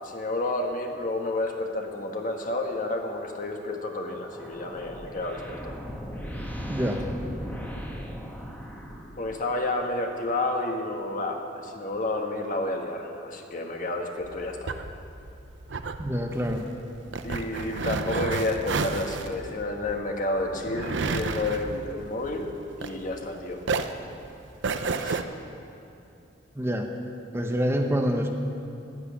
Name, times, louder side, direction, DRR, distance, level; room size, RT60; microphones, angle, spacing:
voice 1, 0.0-5.7 9.2-14.7 17.2-23.6 25.0-25.2, left 2 dB, 45° left, 2 dB, 1.4 m, -30 dB
sound 1, 4.1-9.6, equal, 10° left, 1.3 m, -37 dB
voice 2, 6.7-7.0 16.0-16.6 26.6-26.9 27.3-28.3, equal, 15° right, 3 dB, 0.8 m, -26 dB
sound 2, 14.2-23.3 23.6-25.2, right 4 dB, 75° right, 0.7 m, -31 dB
11.5 x 10.5 x 8.4 m, 2.8 s
head